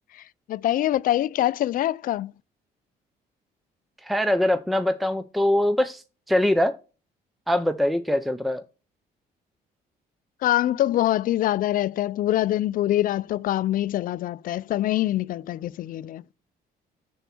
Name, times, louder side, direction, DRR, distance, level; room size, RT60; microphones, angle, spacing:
voice 1, 0.1-2.3 10.4-16.2, left 13 dB, 55° left, 0.4 m, -24 dB
voice 2, 4.0-6.7 7.5-8.6, left 1 dB, ahead, 0.6 m, -23 dB
7.1 x 7.0 x 4.3 m
cardioid pair, 110°, 17 cm